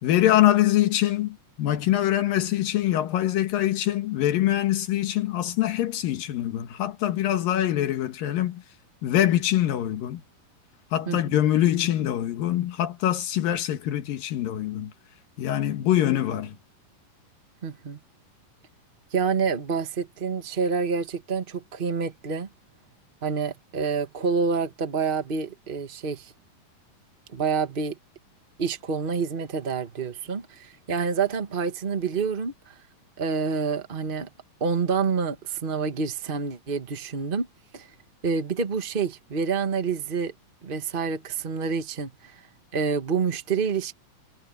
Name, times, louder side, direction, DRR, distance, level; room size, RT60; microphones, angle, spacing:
voice 1, 0.0-8.6 9.0-10.2 10.9-14.9 15.4-16.6, left 13 dB, 90° left, 3.3 m, -24 dB
voice 2, 11.1-11.4 17.6-18.0 19.1-22.5 23.2-26.3 27.3-28.0 28.6-32.7 33.2-34.3 34.6-37.5 37.7-37.9 38.2-40.3 40.6-42.4 42.7-43.9, right 5 dB, 70° right, 0.5 m, -27 dB
omnidirectional pair, 3.9 m